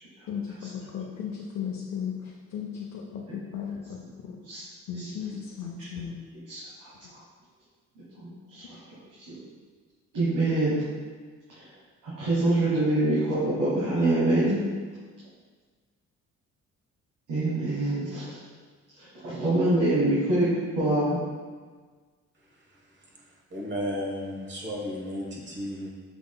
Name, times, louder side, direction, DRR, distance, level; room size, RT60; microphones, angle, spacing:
voice 1, 0.3-4.4 4.9-6.2, left 7 dB, 65° left, -2 dB, 0.6 m, -36 dB
voice 2, 6.5-6.9 8.5-9.4 10.1-10.8 11.5-11.7 12.0-14.6 17.3-18.4 19.0-21.2, right 2 dB, 85° right, -9 dB, 1.4 m, -25 dB
voice 3, 23.5-25.9, equal, 40° right, -2 dB, 1.1 m, -33 dB
5.9 x 3.7 x 2.2 m, 1.5 s
cardioid pair, 90°, 30 cm